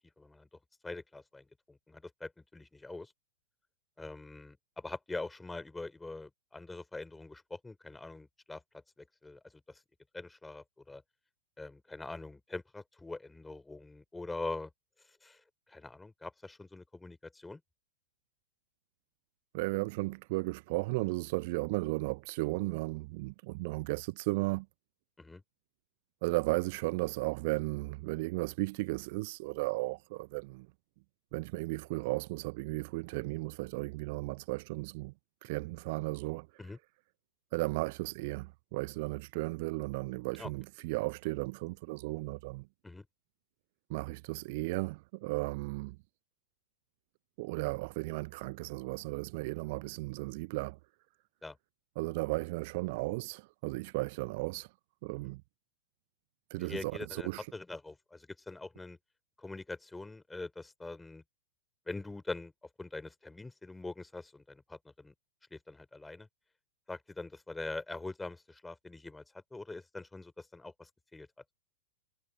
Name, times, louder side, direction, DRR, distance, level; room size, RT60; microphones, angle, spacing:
voice 1, 0.2-0.5 0.8-3.1 4.0-8.6 9.0-9.8 10.1-11.0 11.6-14.7 15.1-17.6 25.2-25.4 36.6-36.8 40.4-40.5 42.8-43.1 51.4-51.6 56.6-59.0 59.4-61.2 61.9-62.5 62.8-65.1 65.5-66.3 66.9-71.3, left 2 dB, 5° left, 4.0 m, -43 dB
voice 2, 19.5-24.7 26.2-30.7 31.3-35.1 35.4-36.5 37.5-42.7 43.9-46.0 47.4-50.8 52.0-54.7 55.0-55.4 56.5-57.5, right 24 dB, 45° right, 0.8 m, -35 dB
figure-of-eight pair, 100°, 0 cm